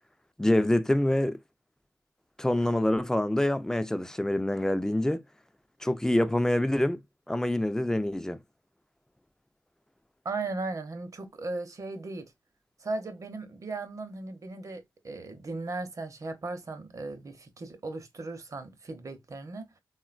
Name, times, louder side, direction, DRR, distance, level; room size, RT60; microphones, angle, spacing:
voice 1, 0.4-1.4 2.4-5.2 5.8-7.0 7.3-8.4, left 1 dB, 5° left, 0.4 m, -26 dB
voice 2, 10.2-12.3 12.8-19.7, right 3 dB, 45° right, 0.7 m, -37 dB
3.6 x 2.2 x 2.4 m
cardioid pair, 70°, 8 cm